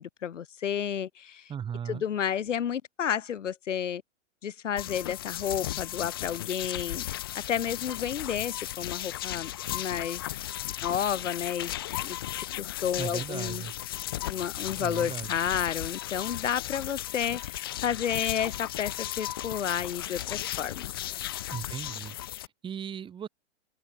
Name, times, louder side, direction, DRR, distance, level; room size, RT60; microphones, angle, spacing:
voice 1, 0.0-1.5 1.9-4.0 4.4-7.0 7.3-10.2 10.8-11.7 12.0-13.6 14.2-20.9, left 8 dB, 80° left, 6.3 m, -31 dB
voice 2, 1.5-2.0 13.0-13.7 14.7-15.3 21.5-23.3, right 8 dB, 15° right, 3.1 m, -37 dB
sound 1, 4.8-22.5, left 14 dB, 20° left, 0.3 m, -35 dB
open air
hypercardioid pair, 155°, 36 cm